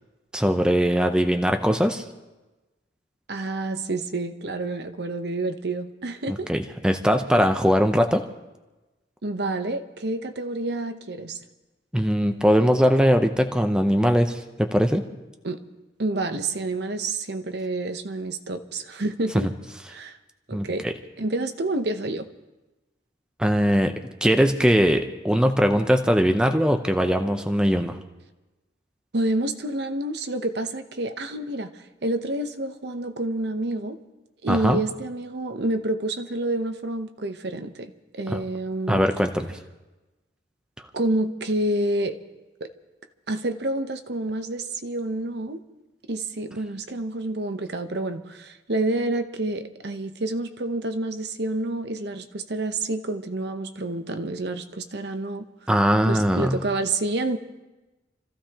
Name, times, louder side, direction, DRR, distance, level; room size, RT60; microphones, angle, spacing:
voice 1, 0.3-2.0 6.3-8.2 11.9-15.0 19.3-19.5 20.5-20.9 23.4-23.9 24.2-28.0 34.5-34.8 38.3-38.4 38.9-39.5 55.7-56.6, equal, 5° right, 5 dB, 0.7 m, -21 dB
voice 2, 3.3-6.5 9.2-11.4 15.4-15.6 16.0-19.5 19.9-20.2 20.5-20.9 21.2-22.3 29.1-34.0 34.4-37.9 38.2-39.1 40.9-42.1 42.6-42.7 43.3-45.6 46.1-55.5 56.1-57.4, right 2 dB, 60° right, 8 dB, 0.9 m, -28 dB
28.5 x 15.0 x 2.9 m, 1.1 s
head